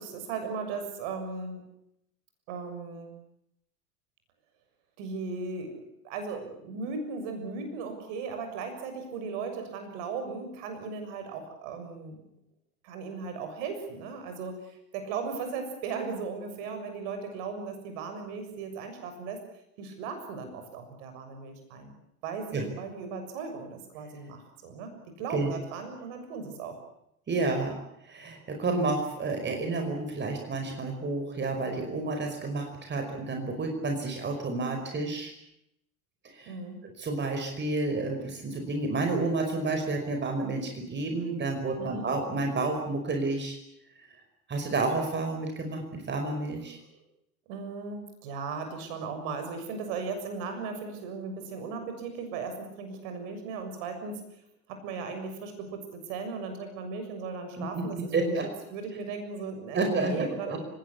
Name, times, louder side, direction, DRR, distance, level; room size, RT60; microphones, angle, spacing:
voice 1, 0.0-1.6 2.5-3.1 5.0-5.8 6.0-12.2 12.8-19.4 19.8-21.9 22.2-26.8 36.5-36.8 41.8-42.1 46.9-47.0 47.5-54.2 54.7-60.6, right 4 dB, 55° right, 6 dB, 6.8 m, -37 dB
voice 2, 27.3-27.8 28.0-35.3 36.3-36.6 37.0-43.6 44.5-46.8 57.6-58.5 59.7-60.1 60.5-60.6, right 3 dB, 25° right, 4 dB, 5.2 m, -30 dB
30.0 x 17.0 x 8.5 m, 0.79 s
figure-of-eight pair, 75°, 45 cm